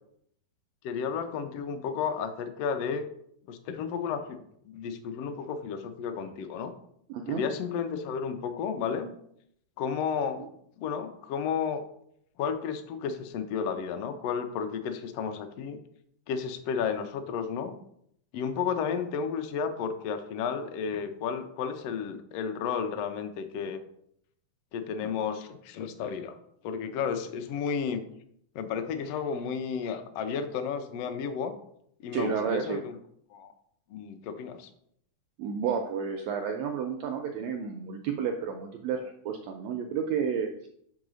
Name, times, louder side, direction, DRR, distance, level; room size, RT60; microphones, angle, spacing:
voice 1, 0.8-3.1 3.5-4.4 4.6-6.7 7.3-9.1 9.8-10.4 10.8-11.8 12.4-15.8 16.3-17.8 18.3-23.8 24.7-26.4 26.6-28.0 28.5-31.5 32.0-32.9 33.3-33.5 33.9-34.7, left 6 dB, 85° left, 7 dB, 1.3 m, -32 dB
voice 2, 7.1-7.4 10.4-10.5 32.1-32.8 35.4-40.7, right 7 dB, 90° right, 4 dB, 1.5 m, -31 dB
5.2 x 4.8 x 6.2 m, 0.69 s
omnidirectional pair, 3.8 m